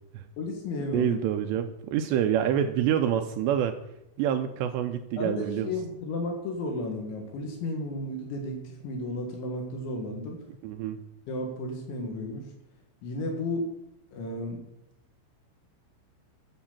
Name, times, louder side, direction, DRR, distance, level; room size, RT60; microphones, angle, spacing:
voice 1, 0.4-1.2 5.2-10.4 11.3-12.5 13.0-13.7 14.1-14.6, left 2 dB, 75° left, 2 dB, 3.8 m, -33 dB
voice 2, 0.9-3.8 4.2-5.7 10.6-11.0, right 10 dB, 85° right, 6 dB, 2.5 m, -27 dB
10.0 x 5.7 x 7.2 m, 0.83 s
omnidirectional pair, 5.6 m